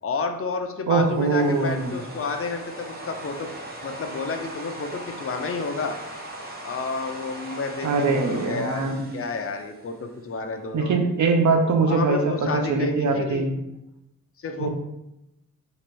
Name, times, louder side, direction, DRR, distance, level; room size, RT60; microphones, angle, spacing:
voice 1, 0.0-3.5 3.8-5.9 6.6-8.9 9.1-11.0 11.9-13.5 14.4-14.7, left 4 dB, 45° left, 5 dB, 0.6 m, -30 dB
sound 1, 0.9-10.2, right 1 dB, 30° right, 1.0 m, -39 dB
voice 2, 0.9-1.9 7.8-9.1 10.7-12.2 12.5-13.5 14.6-14.7, right 4 dB, 60° right, 4 dB, 0.7 m, -22 dB
3.0 x 3.0 x 4.5 m, 0.88 s
wide cardioid pair, 90°, 33 cm